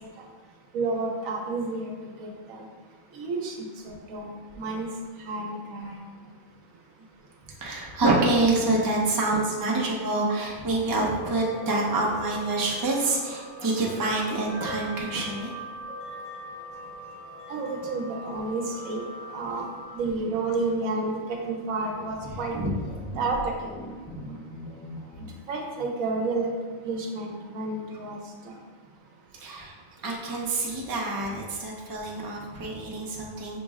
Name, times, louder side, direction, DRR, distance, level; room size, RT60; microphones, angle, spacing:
voice 1, 0.7-2.7 3.1-3.6 3.8-4.9 5.2-6.0 17.5-19.0 19.3-19.6 19.9-22.6 23.2-23.7 25.5-26.5 26.8-28.2 28.5-28.6, right 3 dB, 80° right, 1 dB, 1.1 m, -30 dB
voice 2, 7.6-15.5 22.3-22.7 29.4-29.8 30.0-33.6, right 2 dB, 35° right, -2 dB, 0.3 m, -27 dB
sound 1, 11.0-19.8, equal, 85° left, 1.8 m, -41 dB
sound 2, 22.8-25.3, equal, 35° left, 0.4 m, -39 dB
5.9 x 2.0 x 3.5 m, 1.5 s
omnidirectional pair, 1.4 m